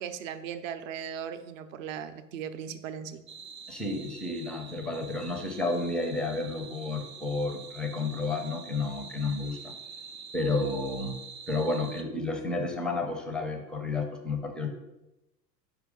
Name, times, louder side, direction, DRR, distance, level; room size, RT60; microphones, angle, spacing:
voice 1, 0.0-3.2, right 8 dB, 55° right, 11 dB, 0.6 m, -38 dB
sound 1, 3.3-12.0, right 5 dB, 90° right, 0.7 m, -46 dB
voice 2, 3.7-9.7 10.3-11.2 11.5-14.7, left 3 dB, ahead, 4 dB, 0.4 m, -31 dB
5.0 x 4.7 x 4.9 m, 0.95 s
figure-of-eight pair, 85°, 48 cm